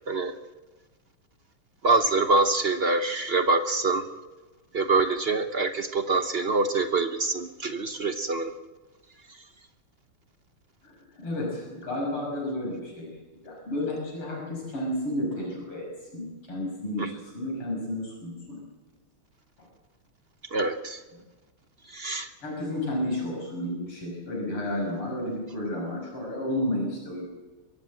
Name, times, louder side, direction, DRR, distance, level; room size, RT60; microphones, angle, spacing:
voice 1, 1.8-4.1 4.7-8.5 17.0-17.1 20.5-21.0 21.9-22.3, right 3 dB, 50° right, 8 dB, 0.7 m, -25 dB
voice 2, 10.8-13.2 13.4-18.6 19.6-19.7 22.4-27.3, left 1 dB, 85° left, -1 dB, 6.9 m, -32 dB
23.5 x 16.0 x 7.8 m, 1.2 s
omnidirectional pair, 2.4 m